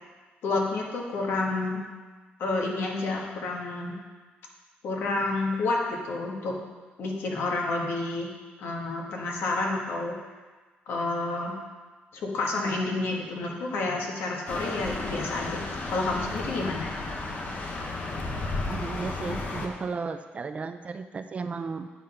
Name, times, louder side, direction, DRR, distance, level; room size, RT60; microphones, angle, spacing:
voice 1, 0.4-1.8 2.4-3.9 4.8-6.5 7.0-8.3 8.6-10.1 10.9-11.6 12.1-16.9, left 2 dB, 75° left, -1 dB, 1.5 m, -29 dB
sound 1, 14.5-19.7, left 2 dB, 45° left, 1.0 m, -33 dB
voice 2, 18.6-21.9, right 4 dB, 35° right, 9 dB, 0.4 m, -34 dB
9.4 x 3.7 x 5.5 m, 1.3 s
cardioid pair, 110°, 4 cm